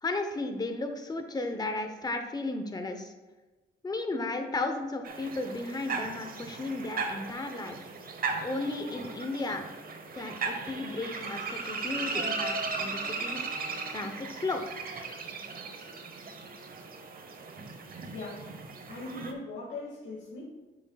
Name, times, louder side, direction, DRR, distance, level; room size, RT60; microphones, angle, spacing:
voice 1, 0.0-3.1 3.8-7.8 8.4-9.6 10.1-14.6, left 2 dB, 20° left, 6 dB, 0.8 m, -34 dB
sound 1, 5.0-19.3, right 4 dB, 45° right, 1.0 m, -37 dB
voice 2, 18.1-18.5 18.9-20.5, left 2 dB, 65° left, -7 dB, 1.9 m, -40 dB
7.6 x 7.5 x 2.3 m, 1.2 s
cardioid pair, 90°, 20 cm